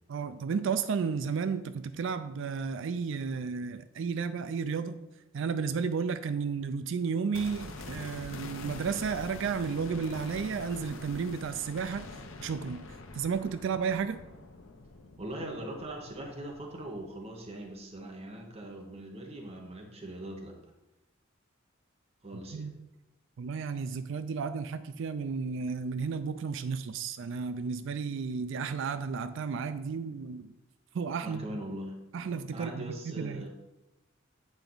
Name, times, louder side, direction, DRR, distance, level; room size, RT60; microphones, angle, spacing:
voice 1, 0.1-5.0 5.3-12.1 12.4-12.8 13.1-14.2 22.5-22.8 23.4-30.5 30.9-31.6 32.1-33.4, right 5 dB, 65° right, 12 dB, 0.4 m, -33 dB
sound 1, 7.3-17.3 17.6-17.7, left 3 dB, 80° left, 0.8 m, -45 dB
voice 2, 15.2-20.6 22.2-22.7 31.2-32.0 32.5-33.5, right 1 dB, 30° right, 1 dB, 1.0 m, -41 dB
8.8 x 4.5 x 3.9 m, 0.97 s
head